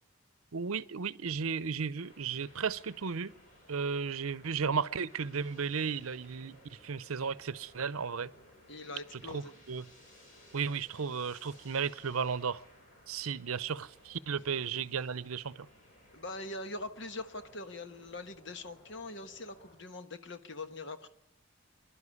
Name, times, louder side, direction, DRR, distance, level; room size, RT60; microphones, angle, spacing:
voice 1, 0.5-3.3 3.7-8.3 9.1-9.9 10.5-12.6 13.1-15.7, right 6 dB, 85° right, 0.7 m, -34 dB
sound 1, 2.0-19.8, left 1 dB, 35° left, 6.8 m, -59 dB
voice 2, 8.7-9.5 16.1-21.1, left 2 dB, 55° left, 1.3 m, -43 dB
25.0 x 11.5 x 9.8 m
head